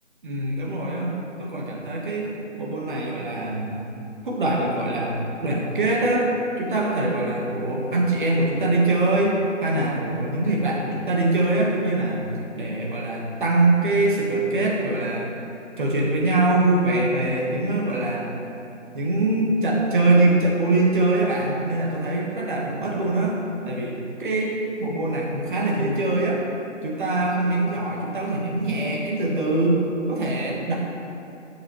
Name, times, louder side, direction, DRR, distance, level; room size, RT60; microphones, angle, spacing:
voice 1, 0.2-3.8 4.2-6.3 6.6-15.3 15.8-18.3 18.9-23.4 23.6-26.4 26.8-30.8, right 2 dB, 40° right, -2 dB, 1.4 m, -23 dB
8.6 x 7.3 x 3.1 m, 2.8 s
figure-of-eight pair, 160°, 38 cm